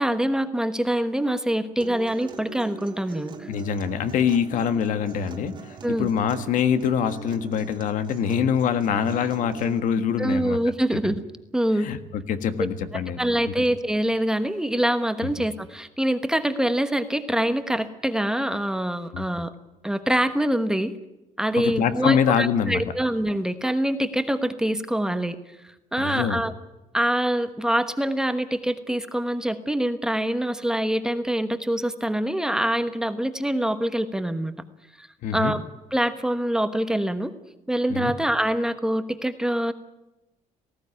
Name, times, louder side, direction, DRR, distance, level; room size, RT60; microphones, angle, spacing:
voice 1, 0.0-3.5 5.8-6.1 10.2-11.2 11.5-11.9 12.9-19.5 19.8-21.0 21.4-25.4 25.9-26.5 26.9-34.5 35.0-35.1 35.3-35.6 35.9-37.3 37.7-39.7, right 1 dB, 5° right, 9 dB, 1.2 m, -25 dB
Acoustic guitar, 1.8-9.8, right 5 dB, 35° right, 1.9 m, -41 dB
voice 2, 3.5-10.6 11.0-11.1 11.8-13.2 13.6-13.7 15.2-15.3 19.1-19.2 21.6-22.9 26.0-26.4 35.2-35.5 37.9-38.1, left 7 dB, 70° left, 10 dB, 1.6 m, -24 dB
19.0 x 15.0 x 9.8 m, 0.98 s
cardioid pair, 135°, 14 cm